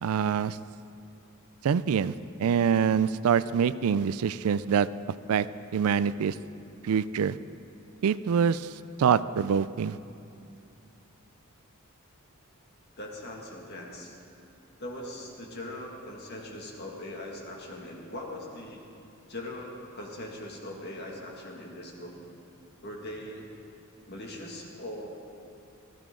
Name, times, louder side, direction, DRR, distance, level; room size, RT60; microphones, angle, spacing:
voice 1, 0.0-0.6 1.6-2.1 2.4-4.9 5.3-5.5 5.7-6.4 6.8-7.4 8.0-8.7 9.0-10.0, right 7 dB, 85° right, 16 dB, 0.4 m, -25 dB
voice 2, 13.0-14.2 14.8-18.9 19.3-22.1 22.8-23.5 24.0-25.1, left 1 dB, 50° left, 0 dB, 2.0 m, -40 dB
17.0 x 15.0 x 3.8 m, 2.7 s
head